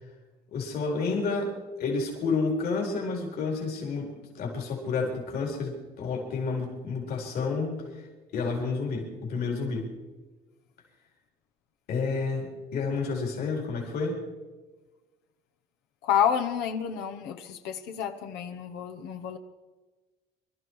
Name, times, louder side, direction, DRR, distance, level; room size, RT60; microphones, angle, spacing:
voice 1, 0.5-7.8 8.3-9.9 11.9-14.2, left 4 dB, 65° left, 0 dB, 4.2 m, -30 dB
voice 2, 16.0-19.4, left 8 dB, 90° left, 5 dB, 1.1 m, -29 dB
24.0 x 12.5 x 4.7 m, 1.2 s
cardioid pair, 110°, 17 cm